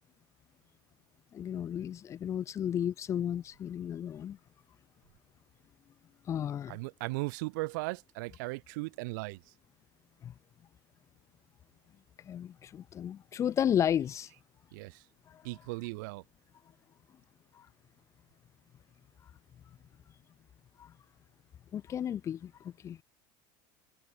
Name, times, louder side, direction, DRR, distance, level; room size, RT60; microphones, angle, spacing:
voice 1, 1.3-4.4 6.3-6.8 10.2-10.3 12.3-14.3 21.7-22.5 22.8-23.0, left 9 dB, 30° left, 0.9 m, -33 dB
voice 2, 6.7-9.4 14.7-15.0 15.4-16.2, right 26 dB, 80° right, 0.6 m, -37 dB
cardioid pair, 140°, 10 cm